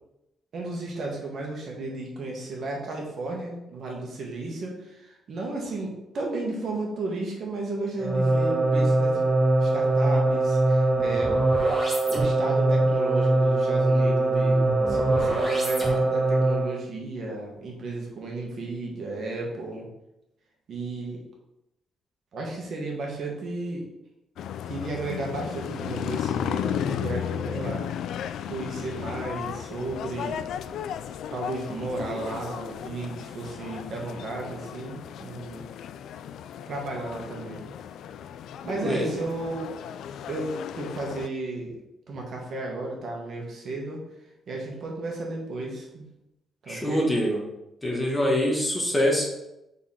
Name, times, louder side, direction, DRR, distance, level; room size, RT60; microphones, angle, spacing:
voice 1, 0.5-9.2 9.6-11.4 12.1-19.9 20.7-21.2 22.3-23.9 24.6-30.4 31.3-35.6 36.7-37.6 38.6-39.6 40.3-41.8 42.1-44.0 44.5-46.0 46.6-47.1, right 2 dB, 50° right, -1 dB, 1.6 m, -34 dB
sound 1, 8.0-16.8, right 2 dB, 10° right, 1.4 m, -22 dB
sound 2, 24.4-41.3, left 9 dB, 80° left, 0.3 m, -34 dB
voice 2, 38.7-39.1 46.7-47.4 47.8-49.3, equal, 10° left, -1 dB, 1.2 m, -24 dB
4.7 x 4.1 x 5.7 m, 0.89 s
cardioid pair, 155°, 0 cm